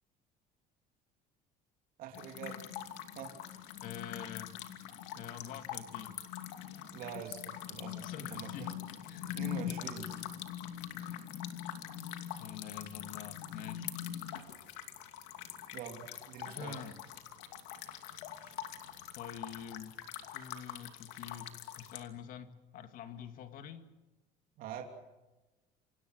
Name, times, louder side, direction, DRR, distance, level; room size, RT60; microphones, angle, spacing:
voice 1, 2.0-2.6 3.1-3.4 6.9-8.8 9.2-10.1 15.7-16.8 18.4-18.5 24.6-24.8, right 9 dB, 55° right, 3 dB, 3.2 m, -45 dB
sound 1, 2.1-22.0, left 11 dB, 90° left, 2.6 m, -43 dB
voice 2, 3.8-4.5 5.1-6.2 8.0-8.7 9.1-9.4 12.4-13.9 16.4-17.0 19.2-20.0 20.3-23.9, left 8 dB, 50° left, 9 dB, 2.0 m, -46 dB
28.5 x 26.0 x 6.5 m, 1.1 s
cardioid pair, 170°, 18 cm